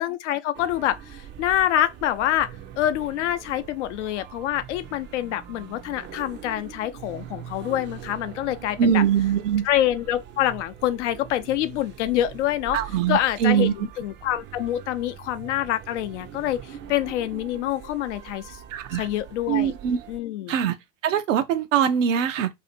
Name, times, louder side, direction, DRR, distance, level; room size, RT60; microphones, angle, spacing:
voice 1, 0.0-2.5 2.8-9.0 9.6-12.8 13.1-18.6 18.9-19.7 20.1-20.5, left 12 dB, 65° left, 0.6 m, -26 dB
sound 1, 0.5-20.2, right 9 dB, 30° right, 0.5 m, -43 dB
voice 2, 8.8-9.7 12.7-13.7 18.7-19.1 19.5-20.0 20.5-20.7 21.0-22.5, right 8 dB, 75° right, 0.7 m, -22 dB
2.7 x 2.5 x 4.1 m
hypercardioid pair, 85°, 38 cm